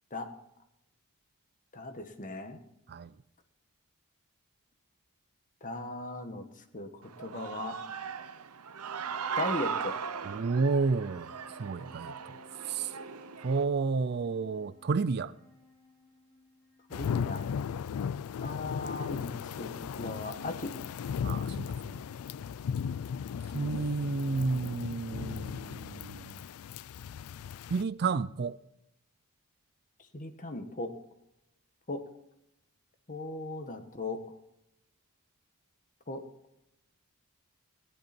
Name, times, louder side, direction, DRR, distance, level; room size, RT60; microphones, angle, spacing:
voice 1, 1.7-2.6 5.6-6.4 6.7-6.9 7.2-7.8 9.3-9.9 16.9-17.4 18.4-20.7 30.1-30.9 31.9-32.0 33.1-34.2 36.1-36.2, left 2 dB, 35° left, 1.5 m, -37 dB
Human voice / Cheering, 7.0-13.6, right 6 dB, 85° right, 0.8 m, -38 dB
Wind instrument woodwind instrument, 8.6-18.1, left 2 dB, 5° right, 4.8 m, -58 dB
voice 2, 10.2-11.3 11.6-12.1 12.7-12.9 13.4-15.3 21.2-22.0 23.5-26.4 27.7-28.6, right 4 dB, 45° right, 0.4 m, -31 dB
sound 1, 16.9-27.8, left 7 dB, 75° left, 0.3 m, -36 dB
17.0 x 10.5 x 4.4 m
head